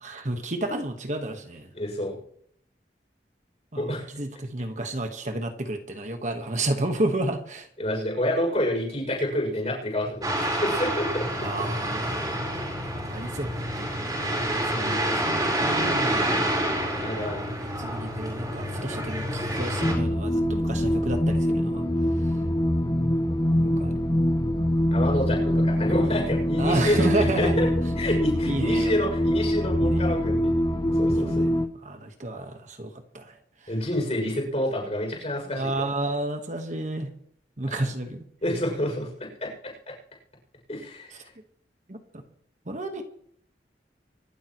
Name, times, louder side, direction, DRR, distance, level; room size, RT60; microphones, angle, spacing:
voice 1, 0.0-1.7 3.7-7.7 11.4-12.2 13.1-13.9 14.6-16.6 17.8-21.8 23.6-24.0 26.6-27.7 28.1-28.2 28.4-29.0 29.8-30.0 31.2-31.3 31.8-33.4 35.5-37.1 37.6-38.3 41.9-42.2 42.7-43.0, right 1 dB, 45° right, 5 dB, 1.4 m, -31 dB
voice 2, 1.7-2.2 3.7-4.0 7.8-11.5 17.0-17.4 24.9-27.7 28.0-30.5 30.8-31.5 33.7-35.7 38.4-39.5 39.9-40.0 40.7-41.1, left 1 dB, 35° left, 0 dB, 6.8 m, -28 dB
sound 1, 10.2-19.9, right 1 dB, 20° right, 4.5 m, -28 dB
sound 2, 19.8-31.7, equal, 20° left, 0.9 m, -24 dB
25.0 x 12.0 x 3.2 m, 0.66 s
head